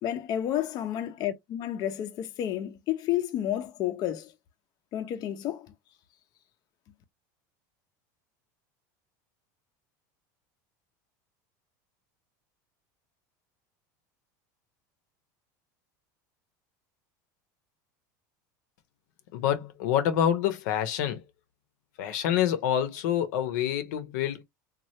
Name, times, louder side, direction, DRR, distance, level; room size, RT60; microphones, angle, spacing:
voice 1, 0.0-4.3 4.9-5.7, left 11 dB, 45° left, 0.6 m, -31 dB
voice 2, 19.3-21.2 22.0-24.4, left 10 dB, 75° left, 0.7 m, -27 dB
3.1 x 2.3 x 2.8 m
supercardioid pair, 120°, 10 cm